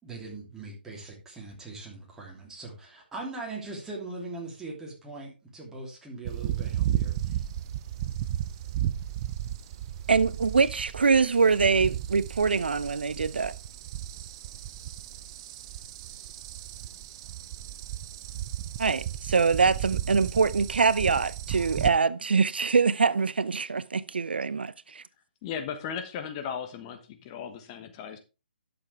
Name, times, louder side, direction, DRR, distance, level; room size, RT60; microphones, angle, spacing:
voice 1, 0.0-7.4, right 3 dB, 10° right, 3.0 m, -41 dB
sound 1, 6.3-21.9, right 11 dB, 30° right, 0.6 m, -34 dB
voice 2, 10.1-13.5 18.8-25.0, right 5 dB, 75° right, 0.5 m, -24 dB
voice 3, 25.4-28.2, left 7 dB, 30° left, 1.2 m, -36 dB
12.0 x 6.9 x 3.4 m
figure-of-eight pair, 140°, 6 cm